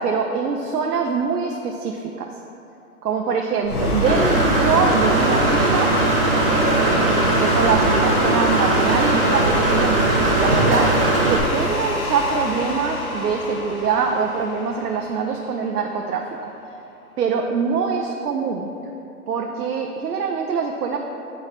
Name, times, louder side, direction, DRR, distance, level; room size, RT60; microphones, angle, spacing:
voice 1, 0.0-2.3 3.0-5.9 6.5-10.9 11.3-16.5 17.2-18.7 19.3-21.0, right 5 dB, 85° right, 2 dB, 0.6 m, -24 dB
sound 1, 3.6-15.8, left 1 dB, 65° left, 1.1 m, -27 dB
Engine / Mechanisms, 4.1-11.4, right 2 dB, 40° right, 0.6 m, -19 dB
7.7 x 4.6 x 3.0 m, 2.7 s
hypercardioid pair, 180°, 46 cm